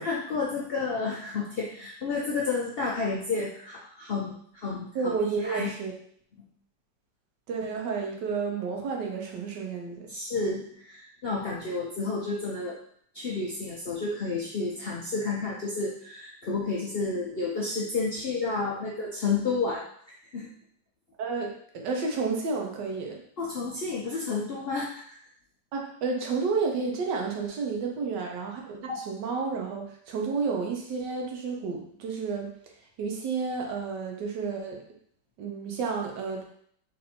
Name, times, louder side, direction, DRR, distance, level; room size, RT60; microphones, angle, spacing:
voice 1, 0.0-5.2 5.4-5.7 6.4-6.5 10.1-12.8 13.1-19.8 20.3-20.5 23.4-25.0 28.9-29.0, left 4 dB, 65° left, -4 dB, 0.5 m, -31 dB
voice 2, 4.9-5.9 7.5-10.0 21.2-23.2 25.7-32.5 33.0-34.8 35.4-36.4, right 4 dB, 80° right, 1 dB, 1.5 m, -31 dB
4.0 x 2.6 x 4.2 m, 0.63 s
omnidirectional pair, 1.8 m